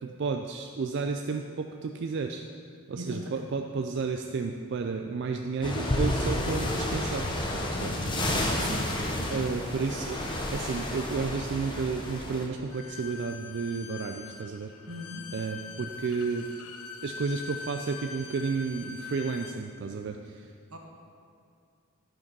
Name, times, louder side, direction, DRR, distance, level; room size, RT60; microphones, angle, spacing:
voice 1, 0.0-2.4 2.9-7.3 7.5-7.9 9.3-10.2 10.5-14.7 15.3-16.5 17.0-20.5, right 4 dB, 50° right, 4 dB, 0.3 m, -32 dB
voice 2, 3.0-3.4 6.4-6.7 8.1-8.9 14.9-15.2 20.7-20.8, equal, 80° right, 1 dB, 1.3 m, -40 dB
sound 1, 5.6-12.5, left 1 dB, 20° left, 0.8 m, -30 dB
Bowed string instrument, 12.7-19.6, left 5 dB, 90° left, 0.7 m, -43 dB
11.0 x 5.2 x 5.3 m, 2.4 s
head